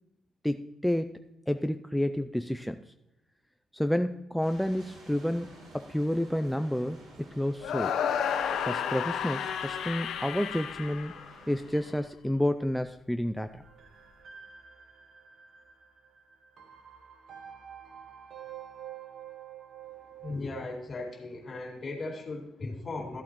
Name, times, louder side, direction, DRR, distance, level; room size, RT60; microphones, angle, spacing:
voice 1, 0.4-1.1 1.5-2.9 3.7-5.5 5.7-7.9 8.6-11.1 11.5-13.6, left 1 dB, 5° left, 8 dB, 0.4 m, -30 dB
sound 1, 4.4-11.9, right 1 dB, 80° right, 4.4 m, -53 dB
sound 2, 7.6-11.8, left 8 dB, 75° left, 0.8 m, -32 dB
sound 3, 13.6-20.7, right 9 dB, 60° right, 1.2 m, -48 dB
voice 2, 20.2-23.2, left 2 dB, 40° left, 0 dB, 2.3 m, -37 dB
14.0 x 8.3 x 3.1 m, 0.89 s
cardioid pair, 90°, 0 cm